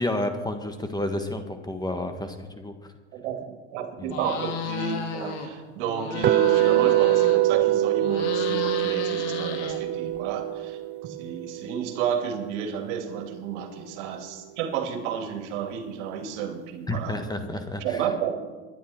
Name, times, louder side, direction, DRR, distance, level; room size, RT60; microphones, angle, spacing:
voice 1, 0.0-2.9 4.0-4.2 16.9-18.1, left 1 dB, 10° left, 6 dB, 1.4 m, -30 dB
voice 2, 3.1-17.2 17.8-18.4, right 7 dB, 65° right, 5 dB, 2.5 m, -32 dB
sound 1, 4.1-5.5 5.8-7.6 7.9-10.2, left 6 dB, 65° left, 2.5 m, -34 dB
sound 2, 6.2-12.3, right 14 dB, 30° right, 0.4 m, -24 dB
24.0 x 10.5 x 4.4 m, 1.3 s
hypercardioid pair, 100°, 37 cm